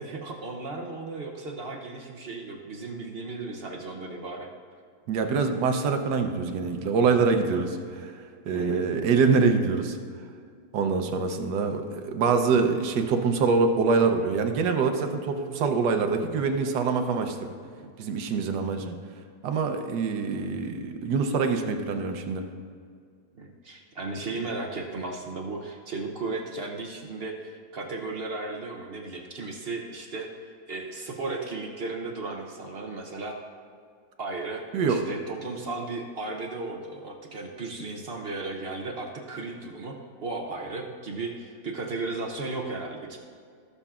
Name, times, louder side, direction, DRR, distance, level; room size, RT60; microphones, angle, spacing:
voice 1, 0.0-4.5 8.5-8.8 17.8-17.9 23.4-33.4 34.2-43.2, right 3 dB, 50° right, 1 dB, 0.7 m, -35 dB
voice 2, 5.1-10.0 10.7-17.5 18.0-19.0 19.4-22.4 34.7-35.0, right 4 dB, 70° right, 6 dB, 1.4 m, -25 dB
18.5 x 6.9 x 2.4 m, 2.2 s
omnidirectional pair, 2.0 m